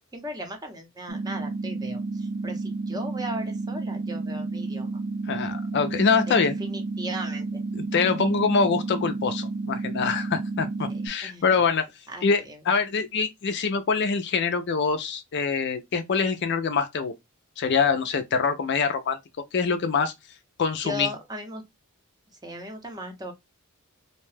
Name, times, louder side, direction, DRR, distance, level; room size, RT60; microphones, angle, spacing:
voice 1, 0.1-4.9 6.3-7.6 8.1-8.4 10.9-11.7 12.1-12.6 20.8-21.6 22.4-23.3, equal, 20° right, 0.7 m, -37 dB
sound 1, 1.1-11.1, right 3 dB, 65° right, 0.5 m, -31 dB
voice 2, 5.3-6.6 7.7-11.9 12.2-17.1 17.6-19.2 19.5-20.1 20.6-21.1, left 5 dB, 50° left, 0.4 m, -24 dB
2.8 x 2.1 x 3.2 m
head